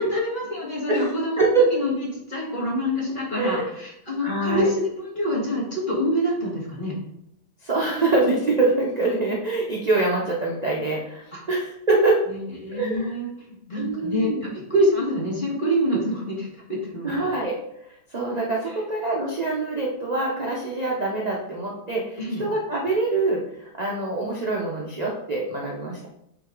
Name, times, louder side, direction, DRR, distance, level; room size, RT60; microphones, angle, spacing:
voice 1, 0.0-1.9 2.3-7.0 11.3-11.4 12.3-17.1 22.2-22.4, equal, 25° left, -5 dB, 2.2 m, -26 dB
voice 2, 1.4-1.7 3.4-3.7 4.2-4.7 7.6-12.2 12.7-13.1 13.7-14.5 17.0-17.6 18.1-26.1, right 2 dB, 30° right, -3 dB, 0.7 m, -24 dB
8.1 x 4.1 x 3.9 m, 0.78 s
omnidirectional pair, 2.1 m